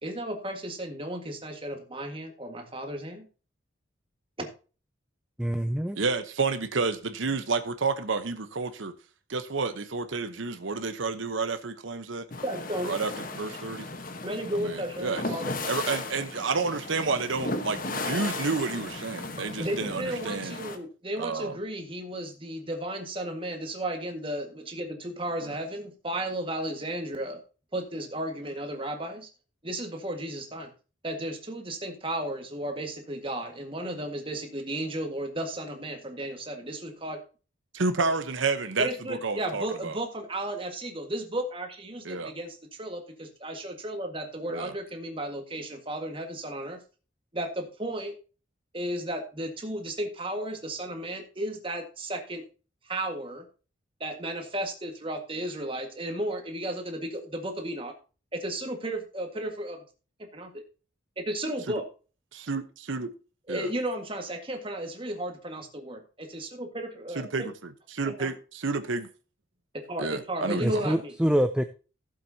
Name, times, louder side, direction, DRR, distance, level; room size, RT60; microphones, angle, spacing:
voice 1, 0.0-3.3 4.4-4.5 12.4-12.9 14.2-15.8 19.6-27.4 27.7-29.3 29.6-30.7 31.0-37.2 38.8-46.8 47.3-48.1 48.7-52.4 52.8-53.4 54.0-57.9 58.3-59.8 60.3-60.6 61.2-61.9 63.5-67.5 68.0-68.3 69.9-71.1, right 1 dB, 25° right, 1.7 m, -34 dB
voice 2, 5.4-6.0 70.6-71.6, equal, 5° right, 0.4 m, -25 dB
voice 3, 6.0-8.9 9.3-12.2 12.8-13.9 14.6-15.2 15.7-20.6 21.2-21.6 25.4-25.6 37.7-40.0 42.0-42.3 44.5-44.7 61.7-61.8 62.3-63.1 63.5-63.7 67.2-67.5 67.9-69.1 70.0-70.9, right 4 dB, 75° right, 1.0 m, -30 dB
sound 1, 12.3-20.8, left 2 dB, 45° left, 1.2 m, -36 dB
15.0 x 7.6 x 2.8 m
head